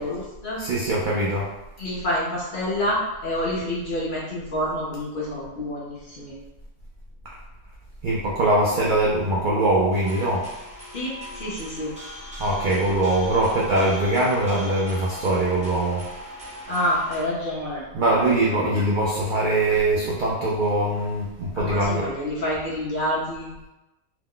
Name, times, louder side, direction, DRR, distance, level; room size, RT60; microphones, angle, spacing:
voice 1, 0.0-0.6 1.8-6.3 10.9-11.9 16.7-17.8 18.1-18.8 21.5-23.5, left 1 dB, 45° left, -6 dB, 0.8 m, -28 dB
voice 2, 0.6-1.5 8.0-10.5 12.4-16.1 17.9-22.1, right 1 dB, 70° right, -5 dB, 0.4 m, -22 dB
sound 1, 9.9-17.2, equal, 5° right, 0.8 m, -39 dB
2.9 x 2.1 x 3.7 m, 1.0 s
omnidirectional pair, 1.5 m